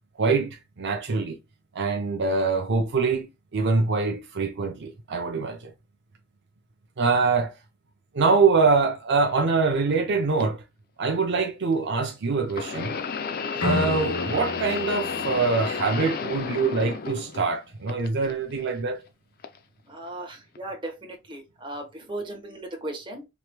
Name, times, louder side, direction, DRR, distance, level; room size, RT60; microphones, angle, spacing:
voice 1, 0.2-1.4 1.7-3.3 3.5-5.7 7.0-7.5 8.1-10.6 11.0-12.9 13.6-19.0, right 4 dB, 55° right, 0.6 m, -24 dB
sound 1, 10.4-10.5 12.5-17.6 17.9-18.7 19.4-19.6 20.5-20.6, left 5 dB, 45° left, 0.5 m, -32 dB
sound 2, 13.6-16.5, left 1 dB, 75° left, 1.3 m, -32 dB
voice 2, 19.9-23.3, right 1 dB, 25° right, 1.1 m, -37 dB
4.9 x 3.0 x 2.2 m
head